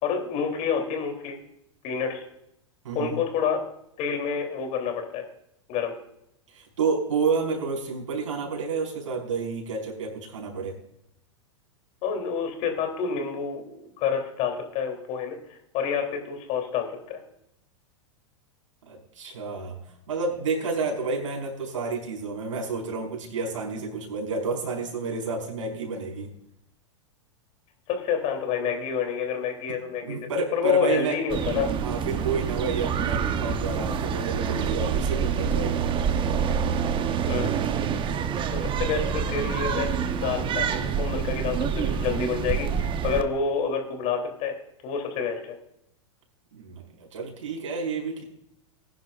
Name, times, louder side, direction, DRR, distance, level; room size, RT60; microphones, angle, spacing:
voice 1, 0.0-1.4 1.8-2.2 2.9-3.6 4.0-5.2 5.7-5.9 12.0-17.2 27.9-31.7 37.3-37.5 38.5-44.5 44.8-45.6, left 6 dB, 45° left, 4 dB, 3.3 m, -28 dB
voice 2, 2.8-3.2 6.5-10.7 18.9-19.8 20.1-26.3 30.0-31.2 31.8-35.8 46.5-48.2, right 4 dB, 75° right, 0 dB, 5.1 m, -30 dB
sound 1, 31.3-43.2, right 7 dB, 30° right, 1.0 m, -27 dB
20.5 x 10.5 x 2.5 m, 0.77 s
hypercardioid pair, 105°, 16 cm